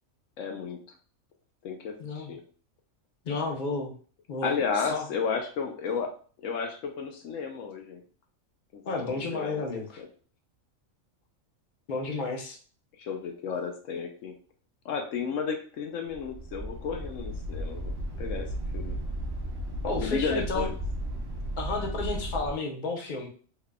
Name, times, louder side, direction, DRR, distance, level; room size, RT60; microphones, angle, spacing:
voice 1, 0.4-0.8 1.6-2.4 4.4-6.1 6.4-8.0 8.7-9.6 10.0-10.1 13.0-14.3 14.8-19.0 20.0-20.8, left 6 dB, 75° left, 3 dB, 0.9 m, -33 dB
voice 2, 2.0-2.3 3.2-3.9 4.3-5.1 8.8-10.0 11.9-12.6 19.8-20.7 21.6-23.3, left 3 dB, 45° left, 1 dB, 0.8 m, -32 dB
sound 1, 16.1-22.5, right 1 dB, 35° right, 0.4 m, -34 dB
3.7 x 3.3 x 2.2 m, 0.42 s
omnidirectional pair, 1.4 m